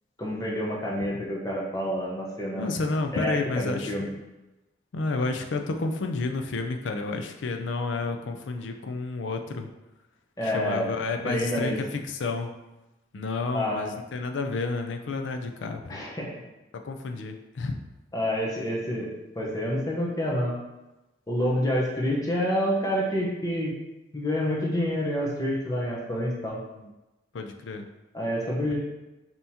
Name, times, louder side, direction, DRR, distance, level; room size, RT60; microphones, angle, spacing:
voice 1, 0.2-2.7 3.1-4.1 10.4-10.9 11.2-11.8 13.5-13.9 15.9-16.3 18.1-20.5 21.3-23.7 24.1-26.6 28.1-28.8, equal, 20° left, -3 dB, 0.8 m, -28 dB
voice 2, 2.5-4.1 4.9-9.7 10.4-12.5 13.1-16.0 16.7-17.8 26.8-26.9 27.3-27.9 28.6-28.7, left 3 dB, 85° left, 5 dB, 0.5 m, -30 dB
5.5 x 2.9 x 2.8 m, 1.0 s
head